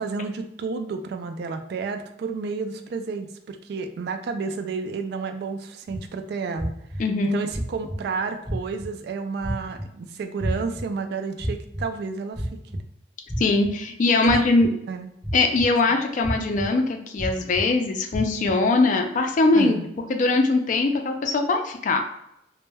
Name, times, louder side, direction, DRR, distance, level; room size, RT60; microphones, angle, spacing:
voice 1, 0.0-6.7 7.2-12.8 14.2-14.5 14.9-15.1 19.5-19.9, right 4 dB, 65° right, 7 dB, 0.3 m, -31 dB
sound 1, 5.9-6.0 6.6-7.0 7.5-8.0 8.5-8.9 9.4-9.8 10.4-10.8 11.4-11.8 12.3-12.8 13.3-13.7 14.2-14.7 15.2-15.7 16.2-16.7 17.2-17.6 18.1-18.5, equal, 5° right, 0.5 m, -29 dB
voice 2, 7.0-7.4 13.4-14.7 15.3-19.8 20.1-22.0, left 3 dB, 45° left, 5 dB, 0.4 m, -21 dB
2.1 x 2.1 x 3.3 m, 0.79 s
head